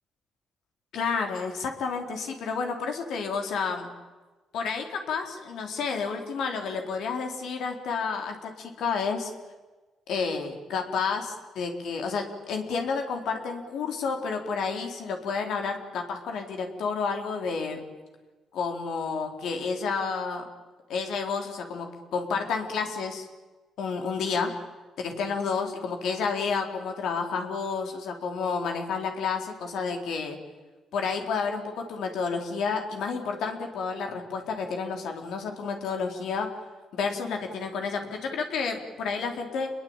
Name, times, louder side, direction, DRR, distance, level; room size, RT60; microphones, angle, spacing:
voice 1, 0.9-3.9 4.5-9.3 10.1-17.8 18.5-20.5 20.9-23.3 23.8-24.5 25.0-30.4 30.9-36.5 36.9-39.7, left 5 dB, 75° left, 4 dB, 4.2 m, -30 dB
28.5 x 21.5 x 9.1 m, 1.2 s
cardioid pair, 90°, 0 cm